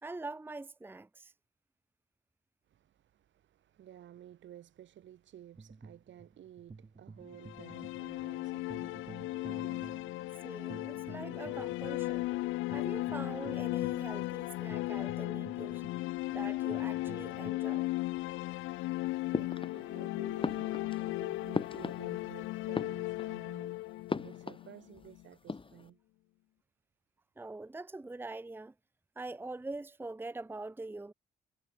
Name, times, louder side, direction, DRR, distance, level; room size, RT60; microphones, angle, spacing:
voice 1, 0.0-1.3 10.4-12.3 12.7-15.8 16.3-17.9 27.4-28.7 29.2-31.1, right 2 dB, 10° right, 0.8 m, -43 dB
voice 2, 2.7-9.8 10.7-10.9 11.2-11.7 18.9-23.8 24.2-26.0, right 11 dB, 70° right, 3.3 m, -54 dB
sound 1, 5.5-17.5, right 4 dB, 30° right, 6.6 m, -52 dB
sound 2, 7.3-25.2, left 19 dB, 90° left, 0.4 m, -36 dB
sound 3, 19.3-20.0 20.4-22.4 22.6-23.5 24.1-25.1 25.3-25.9, left 4 dB, 25° left, 2.7 m, -38 dB
cardioid pair, 90°, 20 cm